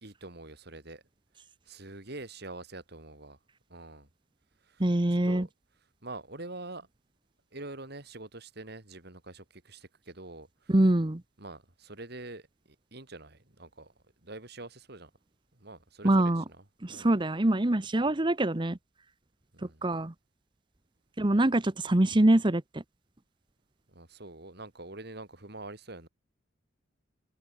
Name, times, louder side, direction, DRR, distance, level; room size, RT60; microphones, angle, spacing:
voice 1, 0.0-1.0 1.7-3.4 3.7-4.1 4.6-5.5 6.0-6.9 7.5-10.7 11.4-12.5 12.9-13.9 14.2-15.1 15.5-16.6 16.9-17.1 19.5-19.9 23.9-26.1, right 2 dB, 60° right, 3.4 m, -45 dB
voice 2, 4.8-5.5 10.7-11.2 16.0-16.4 16.8-18.8 19.8-20.1 21.2-22.6, right 1 dB, 25° right, 0.9 m, -24 dB
head